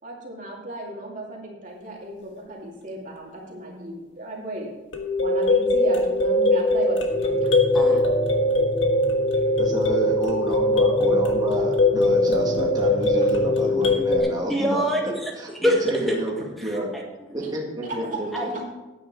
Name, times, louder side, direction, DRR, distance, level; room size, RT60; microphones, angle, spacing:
voice 1, 0.0-4.7 5.2-7.5 17.4-17.5 17.9-18.6, right 1 dB, 40° right, -2 dB, 2.4 m, -35 dB
sound 1, 4.9-14.2, left 1 dB, 75° left, 1.5 m, -21 dB
sound 2, 7.1-13.9, equal, 25° left, 2.5 m, -34 dB
voice 2, 9.6-14.9 15.4-15.7 16.0-16.3 16.6-16.9 17.3-18.6, right 1 dB, 20° right, -2 dB, 1.7 m, -29 dB
voice 3, 14.5-15.3 15.6-16.1 16.6-17.4 18.0-18.1 18.3-18.6, equal, ahead, -1 dB, 1.7 m, -25 dB
9.4 x 9.3 x 4.6 m, 1.1 s
head